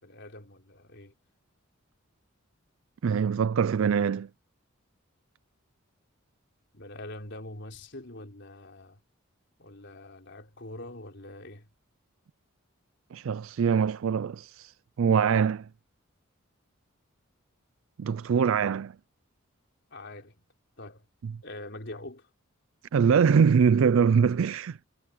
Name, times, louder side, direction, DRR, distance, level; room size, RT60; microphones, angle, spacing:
voice 1, 0.0-1.1 6.7-9.0 9.6-11.7 19.9-20.5 20.8-21.1 21.4-22.3, left 1 dB, 55° left, 4.1 m, -44 dB
voice 2, 3.0-4.3 13.1-15.7 18.0-19.0 21.2-21.3 22.9-24.9, right 6 dB, 70° right, 0.4 m, -23 dB
head